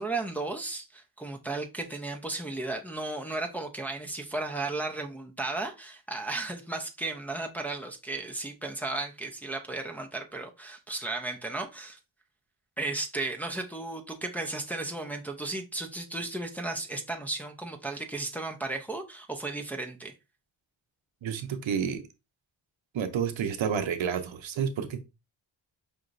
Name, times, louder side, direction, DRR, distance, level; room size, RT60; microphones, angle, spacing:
voice 1, 0.0-12.0 12.8-20.1, right 2 dB, 5° left, 0.6 m, -34 dB
voice 2, 21.2-22.0 22.9-25.0, right 7 dB, 70° right, 0.7 m, -30 dB
5.1 x 2.9 x 2.5 m
cardioid pair, 80°, 47 cm